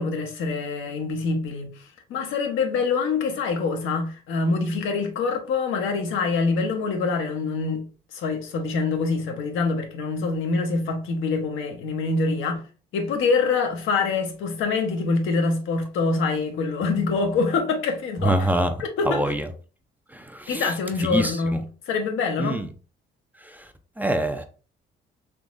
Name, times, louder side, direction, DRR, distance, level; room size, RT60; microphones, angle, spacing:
voice 1, 0.0-7.8 8.1-12.6 12.9-18.5 18.8-19.2 20.5-22.6, left 4 dB, 85° left, 0.8 m, -25 dB
voice 2, 18.2-18.7 19.0-19.5 20.1-20.7 21.0-21.6 22.4-22.7 23.4-23.7 24.0-24.4, right 1 dB, 10° right, 0.4 m, -25 dB
3.7 x 2.9 x 2.4 m
cardioid pair, 90°, 20 cm